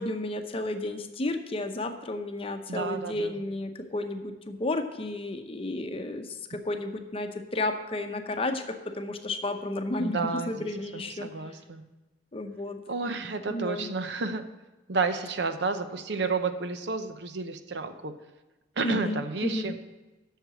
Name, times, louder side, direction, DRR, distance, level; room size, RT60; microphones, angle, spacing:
voice 1, 0.0-11.3 12.3-12.8 13.5-13.9 18.8-19.8, left 2 dB, 30° left, 6 dB, 0.7 m, -32 dB
voice 2, 2.7-3.4 10.0-10.7 10.9-11.8 12.9-14.4 14.9-18.1 18.8-19.7, right 4 dB, 70° right, 9 dB, 0.7 m, -31 dB
7.9 x 6.6 x 7.7 m, 1.1 s
head